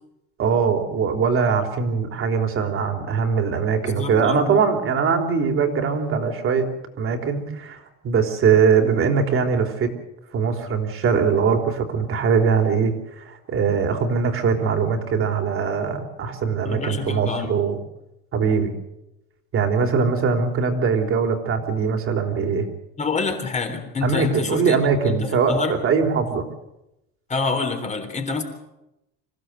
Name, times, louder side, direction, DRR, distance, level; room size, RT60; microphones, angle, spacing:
voice 1, 0.4-6.7 7.0-9.9 10.3-17.8 18.3-18.7 19.5-22.7 24.0-26.5, right 6 dB, 40° right, 4 dB, 3.5 m, -21 dB
voice 2, 3.8-4.5 16.6-17.6 23.0-24.8 25.1-25.8 27.3-28.4, left 4 dB, 20° left, 6 dB, 3.6 m, -27 dB
26.5 x 16.0 x 8.0 m, 0.90 s
cardioid pair, 150°, 32 cm